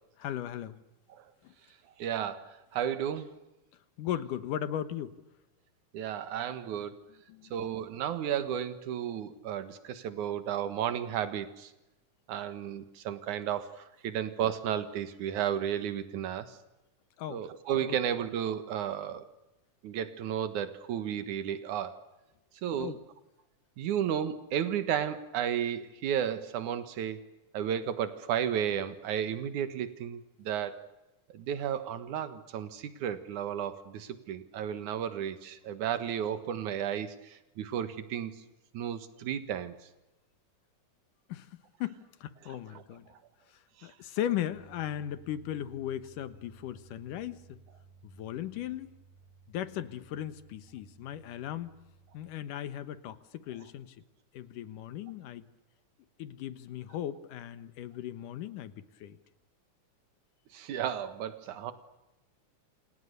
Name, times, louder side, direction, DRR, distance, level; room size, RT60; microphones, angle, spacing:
voice 1, 0.2-0.8 1.4-1.5 4.0-5.1 7.3-7.5 17.2-17.4 17.8-18.0 22.8-23.0 41.3-41.5 41.8-43.1 43.8-47.6 48.0-48.9 49.5-51.7 52.1-54.0 54.3-55.5 56.2-58.7 59.0-59.2, left 11 dB, 80° left, 12 dB, 2.8 m, -37 dB
voice 2, 2.0-3.3 5.9-7.1 7.5-11.7 12.3-16.6 17.3-19.3 19.8-22.0 22.6-23.0 23.8-27.2 27.5-30.9 31.3-38.4 38.7-39.8 42.7-42.8 43.8-43.9 60.5-61.7, right 9 dB, 70° right, 11 dB, 2.9 m, -33 dB
sound 1, 44.5-52.3, right 5 dB, 60° left, 8.3 m, -58 dB
28.0 x 28.0 x 6.8 m, 1.0 s
omnidirectional pair, 3.7 m